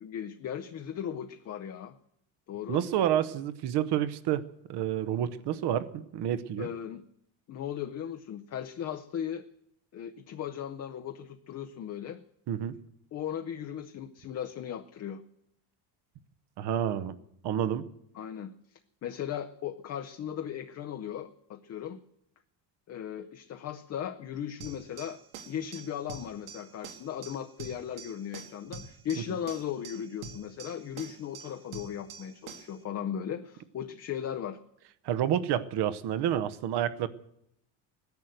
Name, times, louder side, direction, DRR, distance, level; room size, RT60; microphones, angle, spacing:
voice 1, 0.0-2.0 2.5-2.8 6.6-7.0 7.5-9.5 9.9-12.2 13.1-15.2 18.1-18.5 19.0-22.0 22.9-25.2 25.5-34.6, left 9 dB, 35° left, 8 dB, 0.6 m, -37 dB
voice 2, 2.7-4.4 4.7-6.7 12.5-12.7 16.6-17.1 17.4-17.8 35.0-37.1, right 10 dB, 55° right, 14 dB, 1.0 m, -29 dB
sound 1, 24.6-32.8, right 6 dB, 85° right, 2.0 m, -46 dB
17.5 x 10.5 x 7.9 m, 0.76 s
cardioid pair, 145°, 47 cm